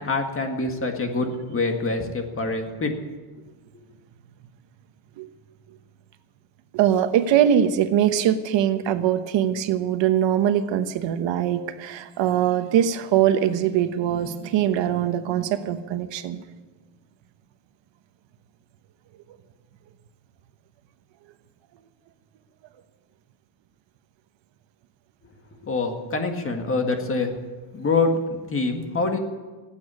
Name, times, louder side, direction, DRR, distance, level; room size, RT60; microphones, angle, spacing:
voice 1, 0.0-2.9 25.6-27.3 27.7-29.2, left 3 dB, 25° left, 4 dB, 1.9 m, -25 dB
voice 2, 6.7-16.4, right 10 dB, 65° right, 9 dB, 1.1 m, -22 dB
17.5 x 8.7 x 8.4 m, 1.3 s
cardioid pair, 145°, 48 cm